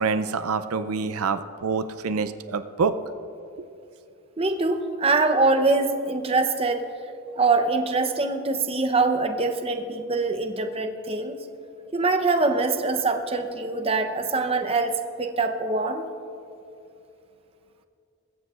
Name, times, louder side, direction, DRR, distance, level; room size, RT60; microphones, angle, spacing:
voice 1, 0.0-2.9, right 5 dB, 90° right, 11 dB, 0.5 m, -26 dB
voice 2, 4.4-6.8 7.4-11.4 11.9-14.9 15.2-16.1, right 3 dB, 25° right, 6 dB, 0.8 m, -23 dB
23.5 x 14.0 x 2.5 m, 2.6 s
head